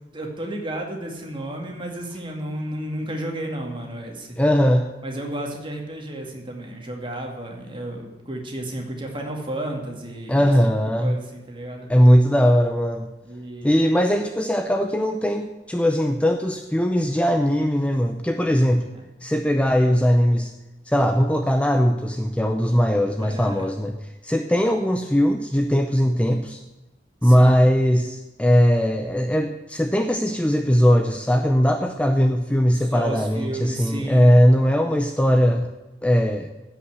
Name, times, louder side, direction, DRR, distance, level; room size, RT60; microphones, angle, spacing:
voice 1, 0.1-4.4 5.0-10.5 11.0-11.9 13.2-13.8 18.9-19.1 23.2-23.7 27.2-27.5 32.7-34.4, right 1 dB, 30° right, 1 dB, 2.2 m, -32 dB
voice 2, 4.4-4.9 10.3-11.2 11.9-13.1 13.6-18.8 19.2-20.5 20.9-24.0 24.2-26.6 27.2-35.7 36.0-36.5, equal, 5° left, 5 dB, 0.5 m, -19 dB
15.5 x 5.8 x 7.9 m, 1.1 s
head